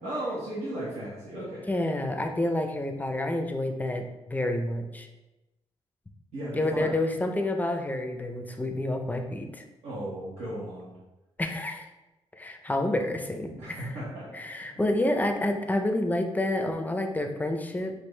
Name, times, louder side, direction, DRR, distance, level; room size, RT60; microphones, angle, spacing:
voice 1, 0.0-1.7 6.3-6.9 9.8-10.9 13.6-14.5, right 1 dB, 75° right, -9 dB, 1.3 m, -35 dB
voice 2, 1.7-5.1 6.5-9.6 11.4-11.8 12.4-13.9 14.3-17.9, left 1 dB, 15° left, 5 dB, 0.5 m, -29 dB
6.1 x 2.6 x 3.2 m, 1.0 s
cardioid pair, 90°, 11 cm